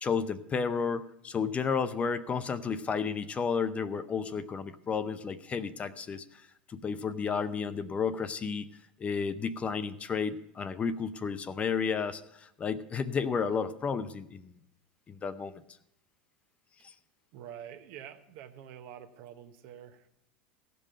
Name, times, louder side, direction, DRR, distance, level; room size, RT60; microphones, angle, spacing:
voice 1, 0.0-8.7 9.0-14.6 15.1-15.6 16.8-16.9, left 6 dB, 25° left, 12 dB, 0.6 m, -32 dB
voice 2, 17.3-20.1, right 9 dB, 55° right, 8 dB, 1.0 m, -47 dB
16.0 x 5.4 x 6.5 m, 0.77 s
hypercardioid pair, 85°, 5 cm